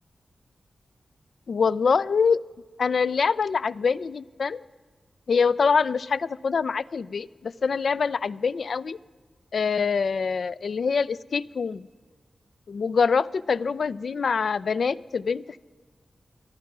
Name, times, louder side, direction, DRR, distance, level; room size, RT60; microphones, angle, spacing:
voice 1, 1.5-2.4 2.8-4.6 5.3-9.0 9.5-11.9 12.7-15.6, left 5 dB, 75° left, 17 dB, 0.3 m, -25 dB
14.0 x 11.5 x 6.0 m, 1.4 s
wide cardioid pair, 100°, 0 cm